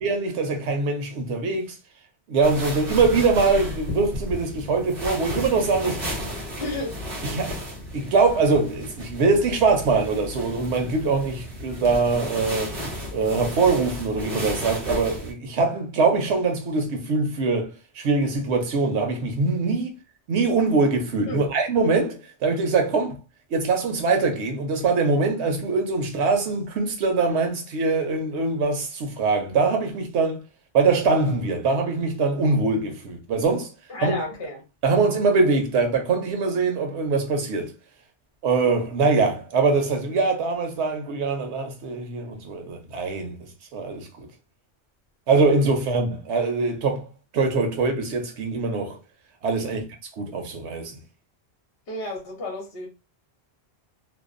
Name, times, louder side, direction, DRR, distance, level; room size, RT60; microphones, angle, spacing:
voice 1, 0.0-1.7 2.3-6.0 7.2-7.5 7.9-12.7 13.1-17.7 18.0-20.0 20.3-23.2 23.5-30.4 30.7-33.7 34.0-34.2 34.8-37.7 38.4-43.4 43.7-44.1 45.3-47.1 47.3-49.0 49.4-49.9 50.2-50.9, right 4 dB, 90° right, 1.0 m, -23 dB
sound 1, 2.4-15.3, equal, 60° right, 1.1 m, -33 dB
voice 2, 6.6-7.0 21.3-21.5 33.9-34.6 49.6-49.8 51.9-52.9, left 1 dB, 65° left, 1.0 m, -32 dB
2.6 x 2.0 x 2.4 m
omnidirectional pair, 1.1 m